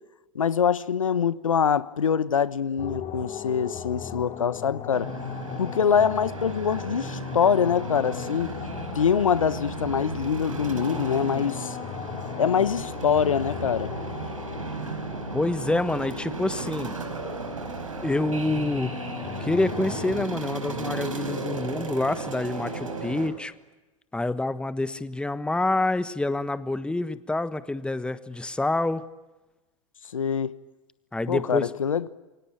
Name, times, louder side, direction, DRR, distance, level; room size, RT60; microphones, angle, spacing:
voice 1, 0.3-5.1 5.6-8.5 8.9-11.8 12.4-13.9 30.1-30.6 31.3-32.1, left 7 dB, 80° left, 1.1 m, -24 dB
sound 1, 2.8-20.3, left 9 dB, 35° left, 3.1 m, -38 dB
sound 2, 4.9-23.3, right 3 dB, 90° right, 4.8 m, -35 dB
voice 2, 15.3-16.9 18.0-18.9 19.4-23.5 24.1-29.0 31.1-31.7, left 2 dB, 5° left, 1.3 m, -27 dB
28.5 x 24.0 x 8.8 m
figure-of-eight pair, 90°, 17 cm